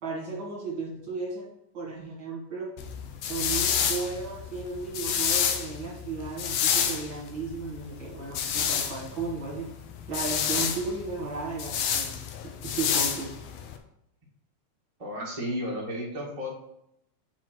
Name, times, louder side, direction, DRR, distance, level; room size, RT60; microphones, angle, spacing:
voice 1, 0.0-1.4 1.7-2.7 3.3-9.7 10.1-12.2 12.6-13.3, right 4 dB, 40° right, -4 dB, 2.3 m, -34 dB
sound 1, 2.8-13.7, left 7 dB, 80° left, 1.5 m, -29 dB
voice 2, 15.0-16.5, equal, 20° right, -5 dB, 0.9 m, -33 dB
8.1 x 4.5 x 4.5 m, 0.79 s
omnidirectional pair, 3.9 m